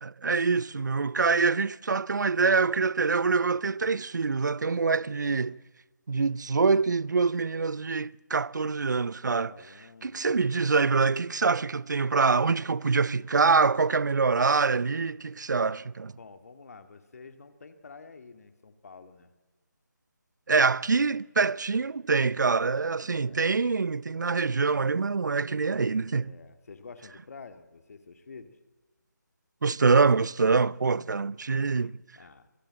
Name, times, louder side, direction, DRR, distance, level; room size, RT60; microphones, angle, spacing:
voice 1, 0.0-5.6 6.1-9.5 10.0-16.1 20.5-26.3 29.6-31.9, right 4 dB, 70° right, 0.6 m, -25 dB
voice 2, 9.4-10.3 16.2-19.3 23.1-23.5 26.2-28.6 31.8-32.5, left 4 dB, 50° left, 2.4 m, -49 dB
25.5 x 20.5 x 7.7 m
figure-of-eight pair, 160°, 10 cm